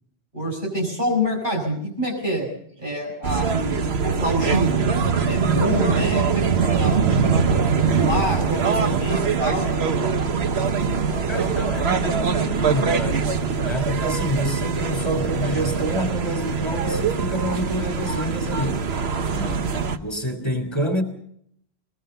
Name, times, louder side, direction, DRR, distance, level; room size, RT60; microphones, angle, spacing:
voice 1, 0.3-2.5 2.8-4.8 5.2-7.6 7.9-9.7, right 1 dB, 50° right, 6.6 m, -26 dB
sound 1, 3.2-20.0, right 5 dB, 75° right, 1.3 m, -23 dB
voice 2, 11.3-13.2 13.6-18.8 19.3-19.7 20.0-21.0, equal, 25° left, 3.3 m, -27 dB
21.5 x 20.5 x 6.8 m
omnidirectional pair, 1.1 m